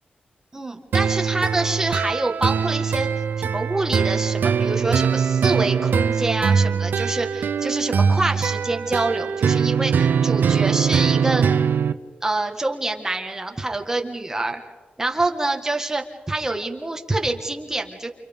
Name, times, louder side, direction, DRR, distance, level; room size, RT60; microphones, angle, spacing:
voice 1, 0.5-3.1 3.4-11.5 12.2-14.6 15.0-18.1, right 2 dB, 15° right, 4 dB, 1.6 m, -26 dB
sound 1, 0.9-11.9, right 6 dB, 70° right, 0.7 m, -21 dB
29.0 x 28.5 x 3.6 m, 1.4 s
wide cardioid pair, 150°, 3 cm